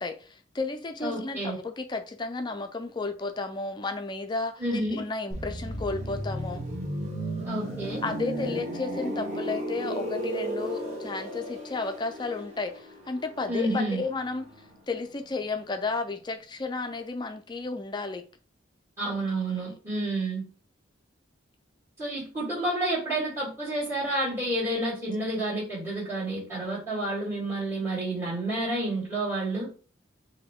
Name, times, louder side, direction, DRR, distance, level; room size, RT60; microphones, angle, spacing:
voice 1, 0.0-6.6 8.0-14.5 14.9-18.2, left 3 dB, 25° left, 0.4 m, -33 dB
voice 2, 1.0-1.6 4.6-5.0 7.4-8.0 13.5-14.0 19.0-20.4 22.0-29.7, right 1 dB, 15° right, 2.1 m, -30 dB
sound 1, 5.3-15.0 15.2-15.5, right 1 dB, 35° right, 1.4 m, -34 dB
4.6 x 2.8 x 3.5 m
head